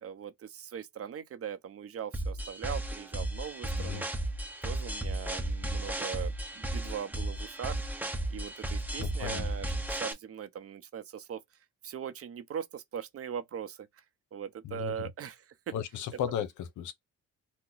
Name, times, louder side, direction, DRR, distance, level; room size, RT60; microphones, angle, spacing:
voice 1, 0.0-4.0 4.6-7.8 8.3-11.4 11.8-13.9 14.3-15.7 16.3-16.4, right 8 dB, 50° right, 0.7 m, -40 dB
sound 1, 2.1-10.1, right 1 dB, 5° right, 0.8 m, -34 dB
voice 2, 9.0-9.5 14.6-15.1 15.7-16.9, left 9 dB, 75° left, 0.8 m, -35 dB
2.8 x 2.1 x 3.9 m
cardioid pair, 90°, 30 cm